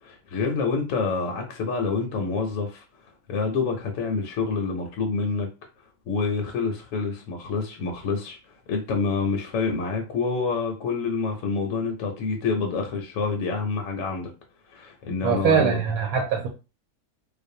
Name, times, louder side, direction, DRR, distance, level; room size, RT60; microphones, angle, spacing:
voice 1, 0.0-2.8 3.3-5.5 6.1-8.4 8.7-14.3 14.7-15.8, left 4 dB, 70° left, 0.9 m, -27 dB
voice 2, 15.2-16.5, right 6 dB, 80° right, 1.0 m, -22 dB
2.5 x 2.1 x 2.6 m
omnidirectional pair, 1.6 m